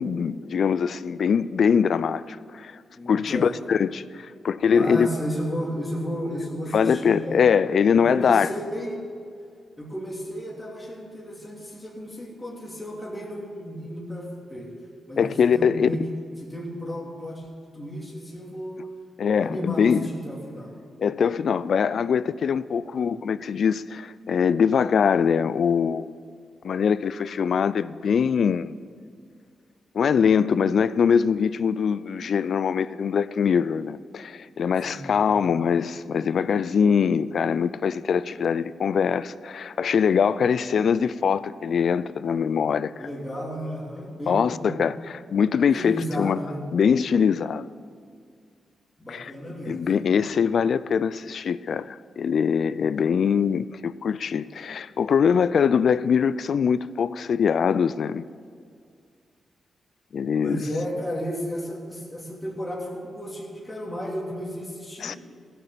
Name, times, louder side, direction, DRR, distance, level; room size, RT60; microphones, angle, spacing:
voice 1, 0.0-2.8 3.1-5.1 6.7-8.5 15.2-15.9 19.2-20.1 21.0-26.1 26.6-28.8 29.9-43.1 44.3-46.4 46.7-47.7 49.1-49.3 49.7-58.3 60.1-60.6 65.0-65.2, left 6 dB, 65° left, 0.3 m, -23 dB
voice 2, 2.9-3.6 4.7-7.4 7.9-9.0 9.8-14.7 15.1-16.0 16.4-17.5 17.7-18.9 19.4-20.7 22.9-23.2 34.8-35.5 43.0-44.7 45.7-46.6 49.0-49.8 60.4-65.2, equal, 10° left, 3.0 m, -33 dB
15.5 x 6.8 x 7.4 m
cardioid pair, 75°, 0 cm